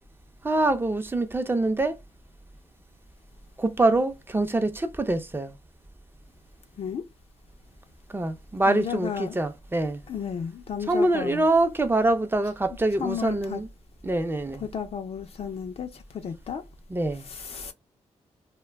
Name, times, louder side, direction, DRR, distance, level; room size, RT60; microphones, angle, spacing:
voice 1, 0.4-2.0 3.6-5.5 8.1-10.0 10.9-13.7 14.0-14.6 16.9-17.3, right 2 dB, 20° right, 0.5 m, -25 dB
voice 2, 8.7-9.4 10.1-11.5 13.0-13.6 14.6-16.6 17.3-17.7, left 7 dB, 60° left, 0.4 m, -33 dB
2.1 x 2.1 x 3.3 m
cardioid pair, 75°, 12 cm